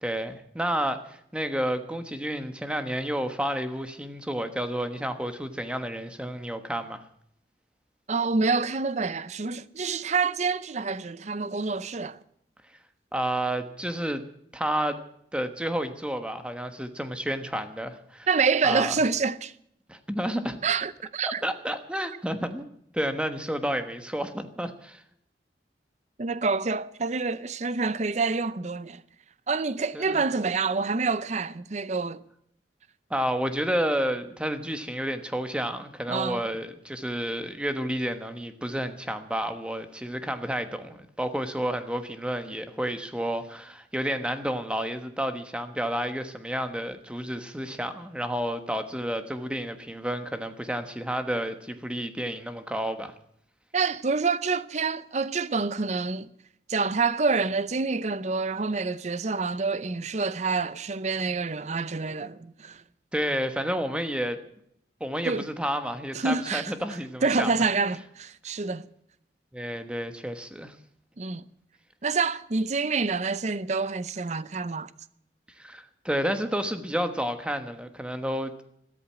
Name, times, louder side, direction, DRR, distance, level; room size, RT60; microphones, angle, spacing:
voice 1, 0.0-7.0 13.1-14.2 14.5-15.0 15.3-18.3 18.6-18.9 19.9-20.6 21.2-22.7 22.9-25.0 29.9-30.2 33.1-53.1 63.1-64.4 65.0-67.5 69.5-70.8 75.6-78.6, equal, 5° right, 1.2 m, -30 dB
voice 2, 8.1-12.2 18.3-19.5 20.6-21.4 26.2-29.0 29.5-32.2 36.1-36.5 53.7-56.3 56.7-62.8 65.3-65.5 66.1-66.7 67.2-68.9 71.2-71.4 72.0-74.9, right 4 dB, 40° right, 0.6 m, -27 dB
13.5 x 13.0 x 7.5 m
head